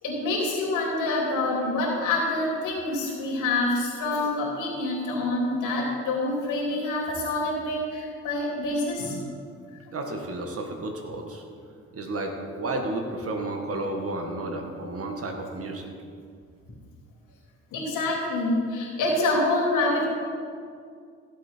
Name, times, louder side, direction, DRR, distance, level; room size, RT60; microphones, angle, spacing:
voice 1, 0.0-9.2 17.7-20.0, left 2 dB, 85° left, -3 dB, 3.4 m, -26 dB
voice 2, 9.9-11.4 11.9-15.9, right 2 dB, 50° right, 3 dB, 1.8 m, -32 dB
14.5 x 8.0 x 4.5 m, 2.2 s
cardioid pair, 90°, 30 cm